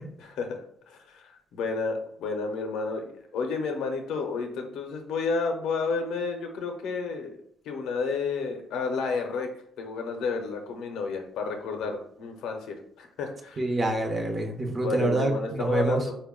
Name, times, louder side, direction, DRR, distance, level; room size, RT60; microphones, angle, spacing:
voice 1, 0.2-7.4 7.6-9.5 9.8-13.6 14.8-16.1, left 4 dB, 85° left, 4 dB, 0.5 m, -31 dB
voice 2, 13.6-16.0, right 2 dB, 35° right, 3 dB, 0.7 m, -26 dB
4.0 x 2.1 x 3.6 m, 0.68 s
cardioid pair, 90°, 0 cm